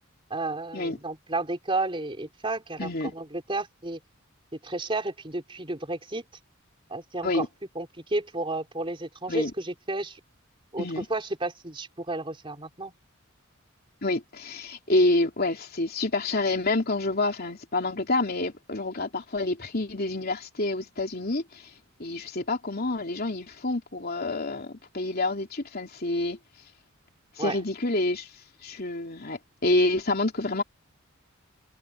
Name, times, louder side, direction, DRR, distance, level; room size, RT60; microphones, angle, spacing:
voice 1, 0.3-4.0 4.6-6.2 6.9-7.5 7.7-10.2 10.7-12.9 27.4-27.6, right 2 dB, 25° right, 4.1 m, -32 dB
voice 2, 2.8-3.1 7.2-7.5 9.3-9.5 10.8-11.0 14.0-21.6 22.0-26.4 27.4-28.3 28.6-30.6, left 2 dB, 45° left, 3.3 m, -28 dB
head